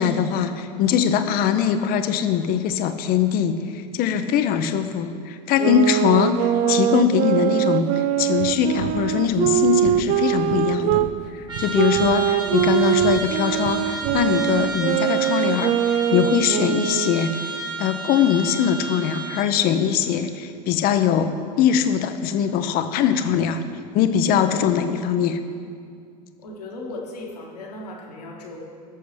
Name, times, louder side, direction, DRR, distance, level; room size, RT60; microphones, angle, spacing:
voice 1, 0.0-11.0 11.3-17.5 17.8-23.6 23.9-25.4, left 8 dB, 45° left, 9 dB, 0.8 m, -22 dB
sound 1, 5.6-11.1 11.7-17.3, right 11 dB, 45° right, 0.4 m, -22 dB
sound 2, 8.4-14.7, right 8 dB, 60° right, 0.8 m, -36 dB
Trumpet, 11.5-19.6, right 3 dB, 20° right, 1.7 m, -32 dB
voice 2, 26.4-28.7, left 2 dB, 75° left, -2 dB, 1.8 m, -36 dB
17.0 x 6.8 x 3.3 m, 2.2 s
figure-of-eight pair, 75°, 20 cm